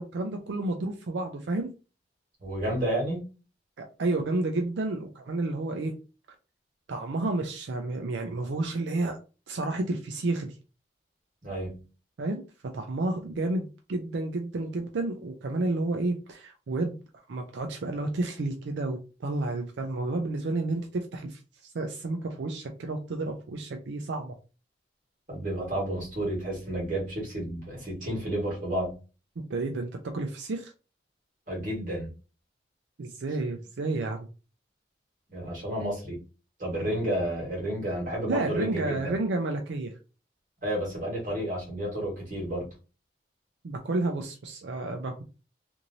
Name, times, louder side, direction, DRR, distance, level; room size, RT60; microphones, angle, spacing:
voice 1, 0.0-1.7 3.8-5.9 6.9-9.2 9.5-10.6 12.2-12.4 12.7-17.0 17.3-24.3 29.5-30.7 33.0-34.3 38.3-39.9 43.6-45.2, right 2 dB, 90° right, 3 dB, 0.5 m, -31 dB
voice 2, 2.4-3.3 11.4-11.8 25.3-28.9 31.5-32.1 35.3-36.2 36.6-39.1 40.6-42.7, right 1 dB, 45° right, -3 dB, 1.5 m, -31 dB
3.0 x 2.6 x 2.6 m, 0.33 s
head